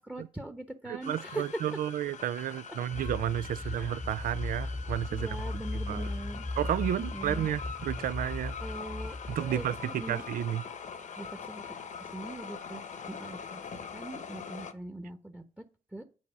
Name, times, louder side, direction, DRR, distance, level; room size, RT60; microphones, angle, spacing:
voice 1, 0.0-1.5 3.6-3.8 5.1-6.4 7.0-7.5 8.6-10.2 11.2-11.6 12.0-12.8 13.1-13.7 13.9-15.4 15.9-16.0, right 1 dB, 5° right, 1.1 m, -42 dB
voice 2, 0.9-5.3 5.9-6.1 6.6-8.6 9.3-10.6, right 11 dB, 70° right, 0.4 m, -32 dB
sound 1, 1.0-14.7, left 6 dB, 55° left, 1.0 m, -43 dB
sound 2, 2.9-10.2, left 2 dB, 15° left, 0.5 m, -37 dB
8.6 x 4.1 x 6.3 m
supercardioid pair, 55°, 15 cm